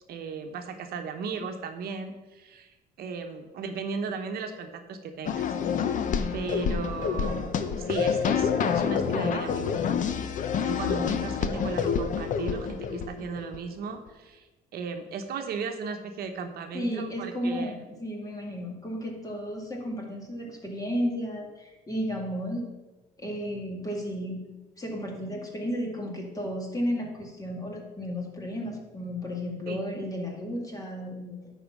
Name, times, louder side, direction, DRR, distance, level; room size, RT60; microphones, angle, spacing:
voice 1, 0.1-5.5 6.3-9.9 10.5-14.5 14.7-17.7 29.7-29.8, right 5 dB, 65° right, 6 dB, 1.0 m, -36 dB
sound 1, 5.2-13.6, left 7 dB, 50° left, 0.7 m, -28 dB
voice 2, 16.7-22.6 23.2-24.4 24.8-31.5, equal, 20° left, 0 dB, 2.1 m, -33 dB
10.5 x 4.2 x 6.1 m, 1.1 s
cardioid pair, 110°, 17 cm